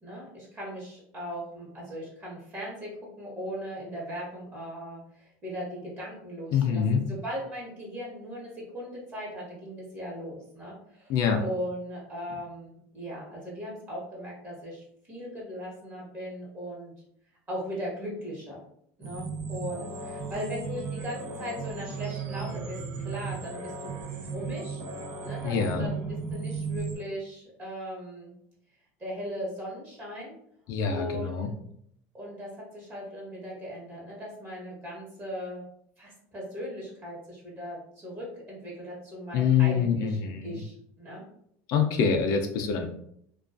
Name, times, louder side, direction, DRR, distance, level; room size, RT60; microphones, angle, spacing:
voice 1, 0.0-2.9 3.2-16.9 17.5-18.6 19.0-22.8 23.0-23.9 24.2-24.8 25.2-28.3 29.0-30.3 30.9-31.5 32.1-35.6 36.0-41.2, equal, 30° right, -5 dB, 1.0 m, -38 dB
voice 2, 6.5-7.0 11.1-11.4 25.4-25.9 30.7-31.5 39.3-40.5 41.7-42.9, left 7 dB, 55° left, 4 dB, 0.4 m, -25 dB
sound 1, 19.0-27.0, right 5 dB, 60° right, 0.6 m, -35 dB
2.3 x 2.3 x 2.4 m, 0.70 s
supercardioid pair, 135°, 7 cm